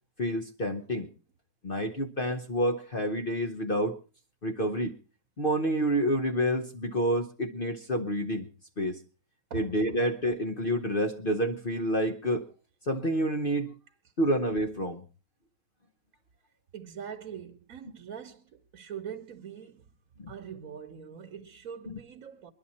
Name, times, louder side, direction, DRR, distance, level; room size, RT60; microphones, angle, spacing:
voice 1, 0.2-1.1 1.6-4.0 4.4-4.9 5.4-8.5 8.8-9.0 9.5-12.5 12.8-13.7 14.2-15.0 20.2-20.3 21.9-22.0, equal, 40° left, 0.8 m, -28 dB
voice 2, 16.7-19.9 20.3-22.5, right 8 dB, 50° right, 1.3 m, -42 dB
22.0 x 11.5 x 4.2 m
omnidirectional pair, 2.1 m